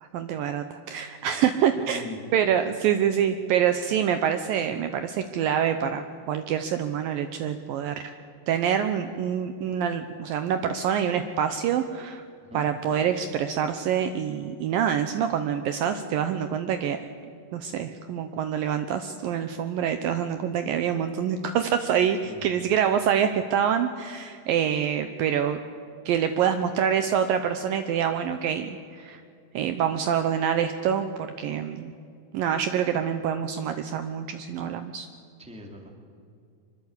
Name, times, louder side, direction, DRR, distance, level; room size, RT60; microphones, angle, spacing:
voice 1, 0.0-2.0 2.3-8.0 8.5-12.2 12.5-17.0 17.5-25.6 26.1-29.2 29.5-31.9 32.3-35.1, right 8 dB, 75° right, 8 dB, 2.3 m, -26 dB
voice 2, 1.4-2.2 12.4-12.7 22.2-22.4 35.4-35.9, left 1 dB, ahead, 2 dB, 2.3 m, -41 dB
25.5 x 22.0 x 8.3 m, 2.4 s
omnidirectional pair, 4.7 m